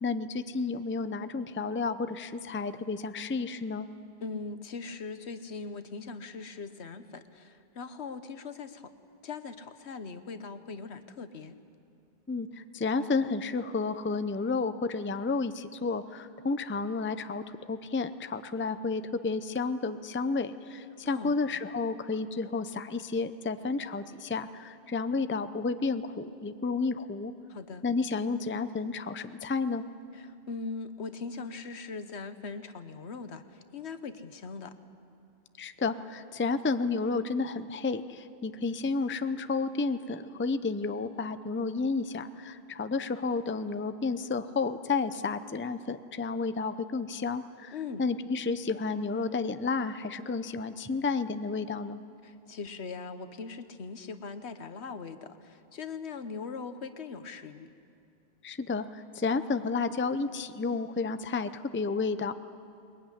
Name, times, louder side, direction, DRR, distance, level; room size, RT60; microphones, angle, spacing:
voice 1, 0.0-3.9 12.3-27.3 27.8-29.8 35.6-52.0 58.4-62.3, left 4 dB, 15° left, 11 dB, 0.5 m, -31 dB
voice 2, 4.2-8.9 9.2-11.6 21.0-21.3 27.5-27.8 30.1-34.7 47.7-48.0 52.2-57.7, left 4 dB, 80° left, 10 dB, 1.3 m, -40 dB
21.0 x 21.0 x 9.9 m, 2.5 s
omnidirectional pair, 1.1 m